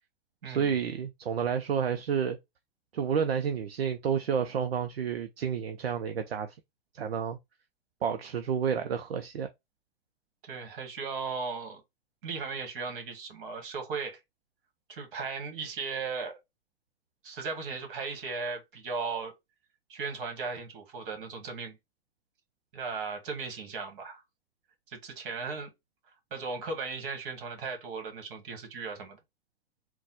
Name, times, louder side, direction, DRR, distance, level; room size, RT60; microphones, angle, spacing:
voice 1, 0.5-2.4 2.9-6.6 6.9-7.4 8.0-9.5, right 7 dB, 75° right, 0.6 m, -30 dB
voice 2, 10.4-11.8 12.2-14.2 14.9-16.4 17.2-19.3 19.9-21.8 22.7-24.2 24.9-25.7 26.3-29.2, right 4 dB, 60° right, 1.8 m, -36 dB
4.0 x 2.3 x 4.1 m
hypercardioid pair, 110°, 30 cm